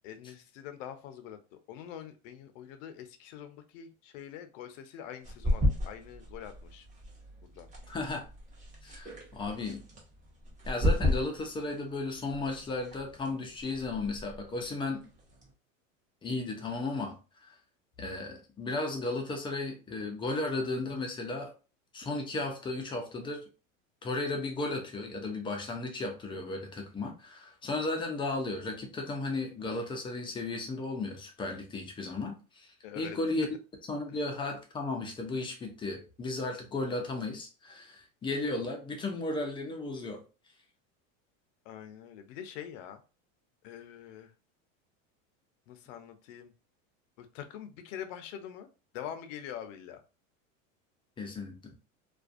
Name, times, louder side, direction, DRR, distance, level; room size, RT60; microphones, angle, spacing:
voice 1, 0.0-6.9 7.4-7.7 32.8-33.2 34.1-34.2 41.6-43.0 43.6-44.3 45.7-46.5 47.2-48.7 48.9-50.0, left 9 dB, 70° left, 8 dB, 0.6 m, -44 dB
sound 1, 5.2-15.5, left 1 dB, 20° right, 0.8 m, -35 dB
voice 2, 7.9-8.3 8.8-9.8 10.7-15.0 16.2-17.6 18.0-21.5 21.9-23.5 24.0-33.5 33.9-40.2 51.2-51.6, left 2 dB, 15° left, 2 dB, 0.3 m, -35 dB
2.5 x 2.2 x 2.4 m, 0.33 s
supercardioid pair, 120°, 40 cm